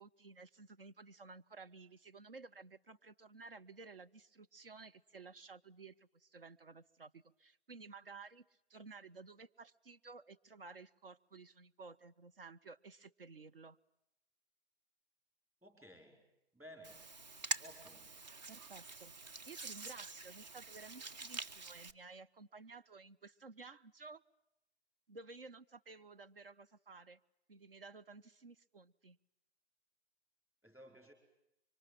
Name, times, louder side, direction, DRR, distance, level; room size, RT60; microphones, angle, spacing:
voice 1, 0.0-13.8 18.5-19.1 19.4-24.2 25.1-27.2 27.5-29.2, right 4 dB, 55° right, 12 dB, 1.4 m, -54 dB
voice 2, 15.6-16.3 16.5-17.1 17.6-18.2 30.6-31.1, equal, 5° right, 4 dB, 5.0 m, -56 dB
Hands, 16.8-21.9, right 3 dB, 40° right, 1.5 m, -45 dB
26.5 x 24.5 x 9.0 m, 0.84 s
figure-of-eight pair, 145°, 33 cm